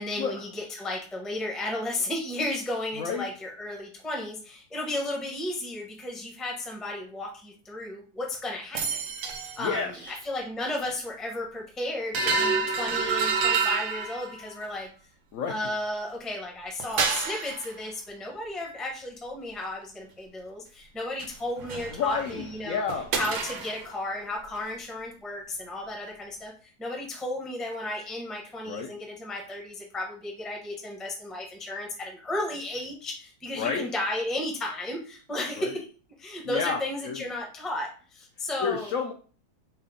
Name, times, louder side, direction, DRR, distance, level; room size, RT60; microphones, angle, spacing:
voice 1, 0.0-9.0 9.6-14.9 15.5-22.8 23.1-35.8 36.2-38.9, left 1 dB, ahead, 0 dB, 0.5 m, -34 dB
voice 2, 3.0-3.3 9.6-10.2 15.3-15.7 21.9-23.1 28.7-29.0 33.6-33.9 35.6-35.8 36.4-37.2 38.4-39.1, left 6 dB, 75° left, 4 dB, 0.7 m, -31 dB
sound 1, 8.7-9.8 10.1-10.2 12.1-14.6 16.8-17.7 21.2-21.3 21.6-22.5 22.9-23.9, right 5 dB, 90° right, 1.5 m, -28 dB
5.4 x 2.1 x 3.7 m, 0.39 s
omnidirectional pair, 1.9 m